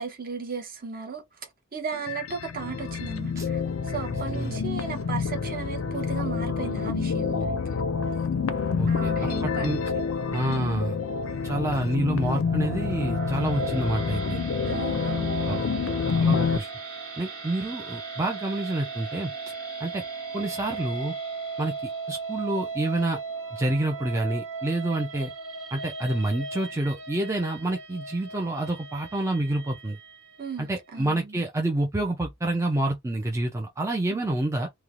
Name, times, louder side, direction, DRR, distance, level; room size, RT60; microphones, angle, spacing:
voice 1, 0.0-7.6 8.9-9.7 10.5-10.7 14.6-15.4 16.2-16.4 30.4-31.4 34.1-34.2, right 5 dB, 40° right, 0.8 m, -36 dB
sound 1, 1.9-16.6, left 5 dB, 65° left, 0.4 m, -28 dB
voice 2, 8.8-9.8 10.3-11.0 11.4-14.4 15.5-15.6 16.0-16.7 17.2-19.3 19.8-20.0 20.3-21.1 21.6-21.7 22.1-23.2 23.5-25.3 25.7-30.0 30.6-34.7, right 1 dB, 15° right, 0.3 m, -28 dB
sound 2, 12.4-30.6, right 4 dB, 65° right, 1.5 m, -37 dB
3.1 x 2.1 x 2.4 m
head